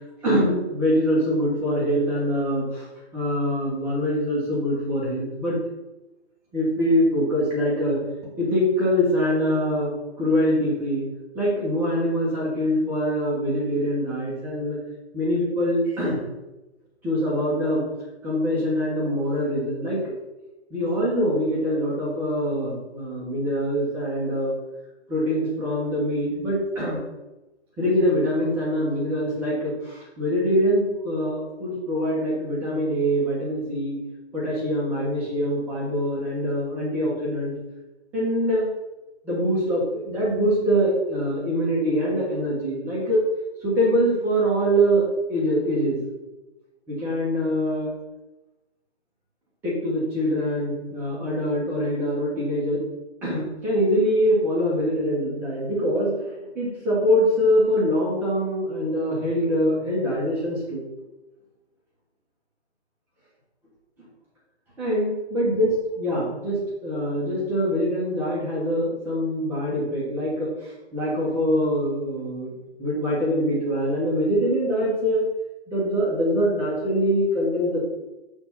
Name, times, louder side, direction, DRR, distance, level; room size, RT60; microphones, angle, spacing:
voice 1, 0.2-2.9 3.1-5.6 6.5-8.0 8.4-11.0 11.3-14.8 15.1-16.2 17.0-17.8 18.2-20.0 20.7-24.5 25.1-27.0 27.8-34.0 34.3-37.5 38.1-38.7 39.2-43.2 43.6-46.0 46.9-47.9 49.6-52.8 53.2-56.3 56.5-60.8 64.8-65.7 66.0-72.5 72.8-75.2 75.7-77.8, equal, 5° right, -7 dB, 1.3 m, -24 dB
6.2 x 4.0 x 5.7 m, 1.0 s
hypercardioid pair, 165°, 34 cm